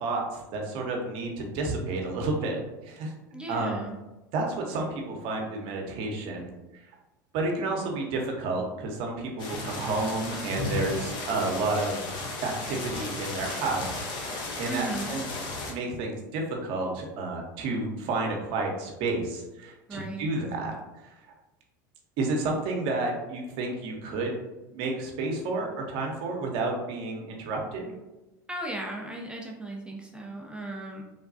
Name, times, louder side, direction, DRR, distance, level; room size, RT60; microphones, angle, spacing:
voice 1, 0.0-2.6 2.8-3.1 3.5-3.8 4.3-6.5 7.3-12.0 12.4-14.0 14.6-15.2 15.7-20.7 21.0-21.1 22.2-24.4 24.7-27.9, right 3 dB, 55° right, 1 dB, 0.8 m, -30 dB
voice 2, 3.3-4.0 14.7-15.2 19.9-20.3 28.5-31.0, right 2 dB, 10° right, -1 dB, 0.5 m, -36 dB
sound 1, 9.4-15.7, left 2 dB, 50° left, 0.8 m, -34 dB
3.4 x 2.2 x 2.6 m, 1.0 s
hypercardioid pair, 100°, 11 cm